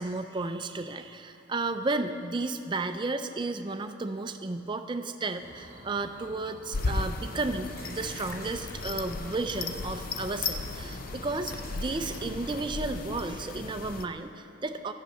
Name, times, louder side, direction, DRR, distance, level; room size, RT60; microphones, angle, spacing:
voice 1, 0.0-14.9, right 3 dB, 25° right, 9 dB, 0.4 m, -33 dB
sound 1, 5.4-12.6, right 1 dB, 40° right, 1.2 m, -49 dB
sound 2, 6.7-14.1, left 3 dB, 45° left, 0.5 m, -35 dB
sound 3, 7.8-9.2 9.6-11.0 11.5-12.6, equal, 15° left, 1.8 m, -49 dB
11.5 x 6.6 x 7.8 m, 2.7 s
head